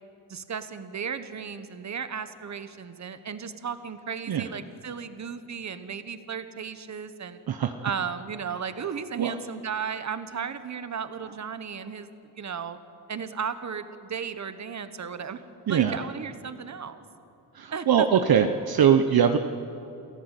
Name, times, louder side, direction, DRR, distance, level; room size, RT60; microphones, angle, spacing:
voice 1, 0.3-7.4 7.8-12.1 12.4-12.8 13.1-15.4 15.7-17.0 17.7-18.1, right 6 dB, 40° right, 11 dB, 1.3 m, -35 dB
voice 2, 15.7-16.0 17.5-19.4, right 8 dB, 60° right, 7 dB, 1.0 m, -21 dB
28.5 x 14.0 x 8.3 m, 2.8 s
cardioid pair, 95°, 41 cm